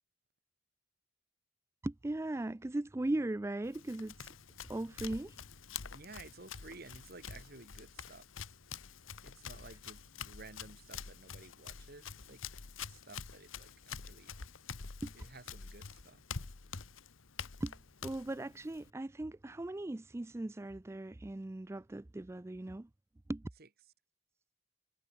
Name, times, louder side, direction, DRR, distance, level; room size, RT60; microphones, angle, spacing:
voice 1, 1.8-4.3 4.7-5.4 15.0-15.1 17.6-22.9 23.3-23.4, right 1 dB, 15° right, 0.3 m, -38 dB
Run, 3.6-18.9, left 6 dB, 75° left, 1.2 m, -47 dB
voice 2, 5.9-8.3 9.2-12.4 12.9-14.3 15.1-16.2 23.6-23.7, right 3 dB, 50° right, 2.2 m, -54 dB
head